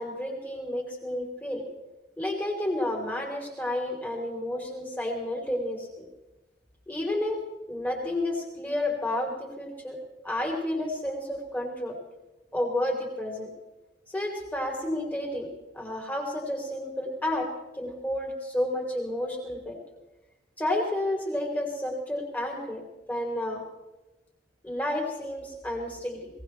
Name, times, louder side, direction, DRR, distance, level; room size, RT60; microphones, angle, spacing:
voice 1, 0.0-1.6 2.2-6.1 6.9-7.4 7.7-10.0 10.2-11.9 12.5-13.5 14.1-17.5 17.7-19.8 20.6-22.8 23.1-23.6 24.6-26.3, left 1 dB, 10° left, 0 dB, 3.3 m, -31 dB
21.5 x 18.5 x 3.2 m, 1.0 s
head